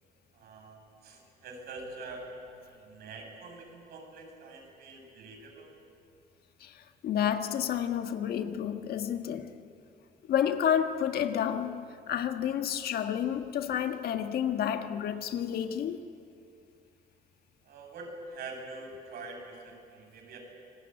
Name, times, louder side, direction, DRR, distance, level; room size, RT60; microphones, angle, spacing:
voice 1, 0.3-2.3 2.6-5.7 17.7-20.4, right 3 dB, 65° right, 7.7 m, -45 dB
voice 2, 6.6-9.5 10.3-16.0, left 9 dB, 65° left, 1.6 m, -30 dB
27.5 x 19.5 x 9.3 m
cardioid pair, 110°, 17 cm